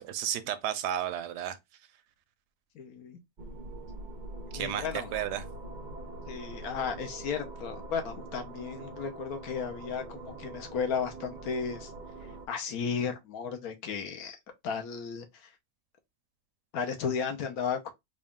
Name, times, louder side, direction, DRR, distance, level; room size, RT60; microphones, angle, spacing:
voice 1, 0.0-1.6 4.5-5.4, right 10 dB, 80° right, 1.2 m, -33 dB
voice 2, 2.7-3.2 4.5-5.1 6.3-11.9 12.5-14.4 14.6-15.3 16.7-17.9, left 6 dB, 70° left, 1.2 m, -34 dB
sound 1, 3.4-12.5, right 2 dB, 50° right, 0.5 m, -43 dB
3.9 x 2.3 x 3.5 m
omnidirectional pair, 1.7 m